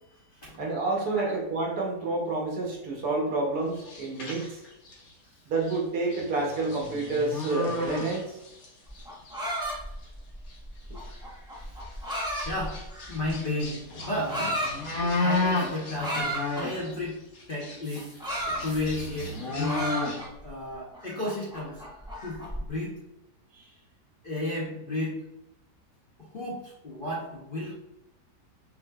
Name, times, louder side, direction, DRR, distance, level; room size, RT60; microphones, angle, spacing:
voice 1, 0.6-4.6 5.5-8.3 23.6-23.7, right 2 dB, 70° right, -1 dB, 1.4 m, -29 dB
sound 1, 3.7-5.1 5.6-5.8 6.1-8.7 8.9-9.4 10.0-10.1 10.5-10.6 10.9-11.2 11.8-17.0 17.3-20.3, left 2 dB, 60° left, 1.3 m, -33 dB
sound 2, 8.9-13.3 14.0-14.7 16.0-16.7 17.8-19.3 19.6-20.5 20.9-22.6, right 1 dB, 5° right, 0.6 m, -34 dB
voice 2, 11.6-12.8 13.1-14.6 15.0-17.2 17.5-18.1 18.5-19.8 20.4-21.8 22.2-23.0 24.2-25.2 26.2-27.8, left 1 dB, 45° left, -5 dB, 0.7 m, -33 dB
5.8 x 2.7 x 2.3 m, 0.86 s
omnidirectional pair, 1.8 m